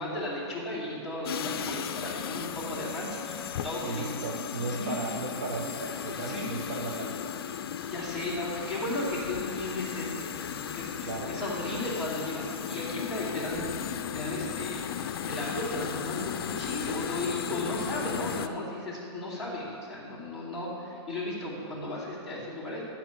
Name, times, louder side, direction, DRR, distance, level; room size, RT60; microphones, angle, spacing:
voice 1, 0.0-4.3 4.8-5.0 6.3-6.5 7.7-10.2 10.5-14.9 15.3-22.9, left 1 dB, 5° right, -10 dB, 2.6 m, -35 dB
sound 1, 1.2-18.5, left 8 dB, 55° left, 0.5 m, -36 dB
voice 2, 3.8-7.4 11.1-11.3, right 3 dB, 40° right, 1 dB, 0.9 m, -35 dB
12.0 x 4.3 x 7.3 m, 2.5 s
hypercardioid pair, 165°, 14 cm